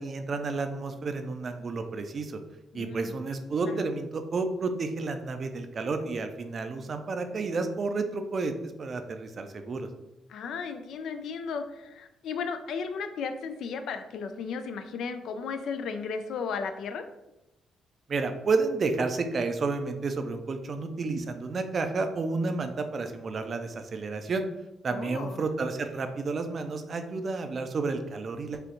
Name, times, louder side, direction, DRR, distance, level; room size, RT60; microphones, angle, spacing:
voice 1, 0.0-2.4 2.7-9.9 18.1-24.5 24.8-28.6, right 3 dB, 45° right, 7 dB, 0.4 m, -31 dB
voice 2, 2.7-3.1 3.6-3.8 10.3-17.0 24.9-25.4, left 5 dB, 75° left, 8 dB, 0.4 m, -35 dB
4.9 x 2.3 x 3.0 m, 0.93 s
cardioid pair, 90°, 0 cm